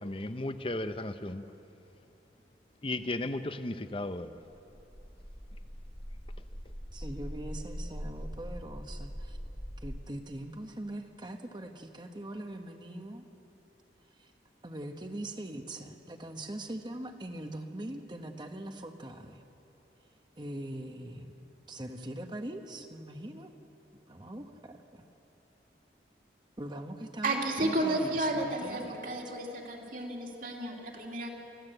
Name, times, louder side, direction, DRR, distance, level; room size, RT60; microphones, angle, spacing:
voice 1, 0.0-1.4 2.8-4.4, left 2 dB, 30° left, 11 dB, 0.7 m, -35 dB
sound 1, 4.5-10.0, equal, ahead, 1.9 m, -42 dB
voice 2, 6.9-9.4 9.8-13.2 14.2-14.3 14.6-19.4 20.4-21.3 21.7-23.5 24.1-25.0 26.6-29.2, right 1 dB, 25° right, 5 dB, 1.1 m, -42 dB
voice 3, 27.2-31.3, right 1 dB, 50° right, 0 dB, 2.8 m, -32 dB
24.5 x 15.5 x 7.9 m, 3.0 s
head